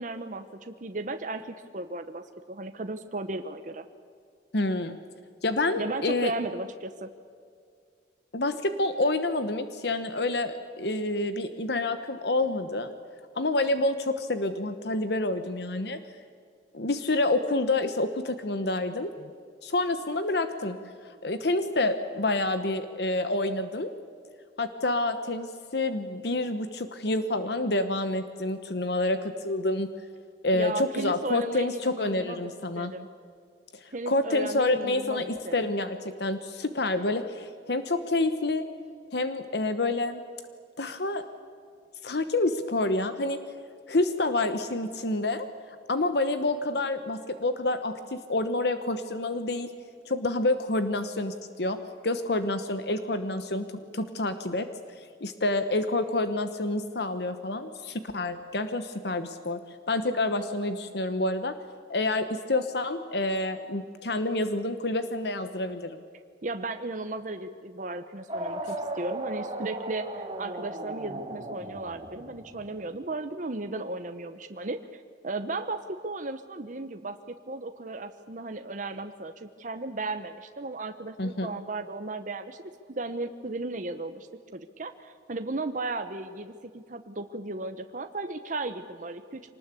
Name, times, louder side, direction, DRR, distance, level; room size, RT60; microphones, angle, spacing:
voice 1, 0.0-3.8 5.7-7.1 30.5-32.5 32.7-33.1 33.9-35.5 66.4-77.2 77.5-84.3 84.5-89.5, right 2 dB, 45° right, 8 dB, 0.9 m, -35 dB
voice 2, 4.5-5.0 5.4-6.3 8.3-12.9 13.4-16.0 16.7-19.3 19.6-20.8 21.0-23.9 24.6-29.9 30.4-32.9 33.7-35.2 35.5-38.7 39.1-40.2 40.8-41.2 42.0-43.4 43.9-49.7 50.1-51.8 52.0-53.6 53.9-54.7 55.0-59.6 59.9-61.5 61.9-66.0 81.2-81.5, left 2 dB, 60° left, 10 dB, 1.1 m, -28 dB
sound 1, 68.3-72.8, right 1 dB, 30° right, 2.2 m, -36 dB
25.0 x 19.5 x 8.4 m, 2.2 s
head